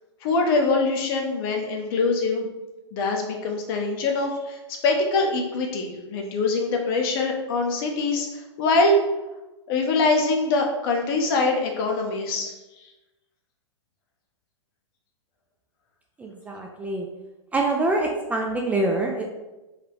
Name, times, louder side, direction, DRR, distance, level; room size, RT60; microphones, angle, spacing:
voice 1, 0.2-2.5 2.9-9.0 9.7-12.9, left 3 dB, 50° left, 2 dB, 0.9 m, -24 dB
voice 2, 16.2-17.1 17.5-19.2, right 2 dB, 10° right, 0 dB, 0.3 m, -25 dB
4.1 x 2.2 x 4.5 m, 1.0 s
hypercardioid pair, 120°, 16 cm